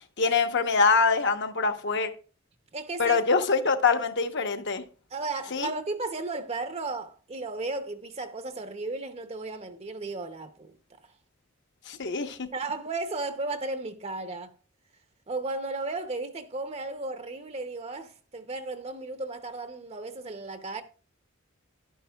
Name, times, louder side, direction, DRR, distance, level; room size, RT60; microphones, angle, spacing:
voice 1, 0.2-2.1 3.0-4.8 5.5-5.7 11.9-12.5, left 4 dB, 60° left, 1.0 m, -24 dB
voice 2, 2.7-3.2 5.1-10.7 12.5-14.5 15.3-20.8, right 3 dB, 30° right, 0.7 m, -34 dB
11.0 x 10.0 x 2.3 m
head